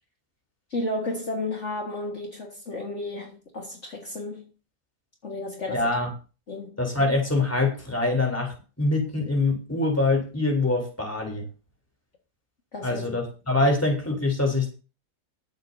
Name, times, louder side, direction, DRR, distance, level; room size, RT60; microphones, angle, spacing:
voice 1, 0.7-4.5 5.2-5.9 6.5-6.8 12.7-13.0 13.6-13.7, left 2 dB, 45° left, 2.0 m, -33 dB
voice 2, 5.7-6.1 6.8-11.5 12.8-14.7, left 2 dB, 10° left, 3.4 m, -24 dB
21.5 x 8.1 x 2.7 m
omnidirectional pair, 1.7 m